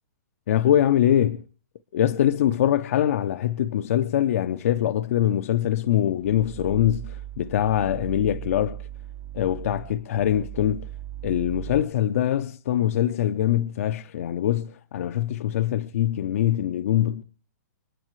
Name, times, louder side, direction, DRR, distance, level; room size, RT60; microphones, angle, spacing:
voice 1, 0.5-1.4 1.9-8.8 9.3-10.8 11.2-17.2, left 11 dB, 55° left, 0.6 m, -23 dB
sound 1, 6.2-11.8, right 13 dB, 20° right, 0.6 m, -38 dB
29.5 x 9.9 x 3.1 m
hypercardioid pair, 165°, 9 cm